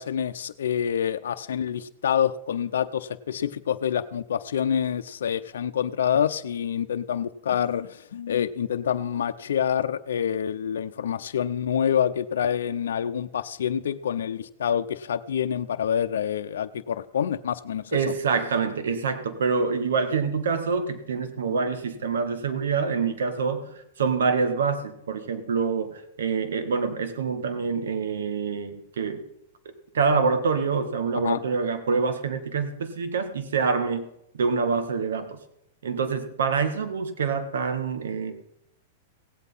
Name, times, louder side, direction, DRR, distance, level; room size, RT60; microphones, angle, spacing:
voice 1, 0.0-17.8 31.1-31.4, left 8 dB, 85° left, 9 dB, 0.7 m, -27 dB
voice 2, 17.9-23.7 24.0-29.2 29.9-34.1 34.3-35.4 35.8-38.4, right 5 dB, 85° right, 9 dB, 1.7 m, -26 dB
17.0 x 8.3 x 5.6 m, 0.79 s
hypercardioid pair, 130°, 0 cm